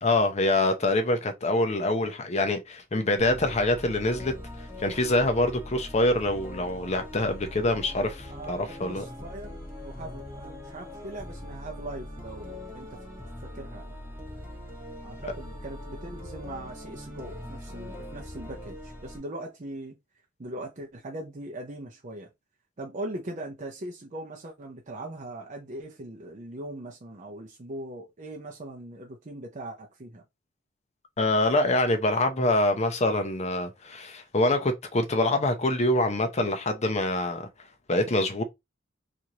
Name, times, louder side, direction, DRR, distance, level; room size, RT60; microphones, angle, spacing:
voice 1, 0.0-4.3 4.8-9.1 31.2-37.5 37.9-38.4, left 2 dB, 35° left, 0.6 m, -25 dB
sound 1, 3.2-19.2, left 1 dB, 10° right, 1.5 m, -41 dB
voice 2, 8.3-13.0 13.4-13.9 15.0-20.0 20.4-22.3 22.8-30.2, right 1 dB, 40° right, 0.6 m, -40 dB
4.5 x 2.5 x 2.9 m
head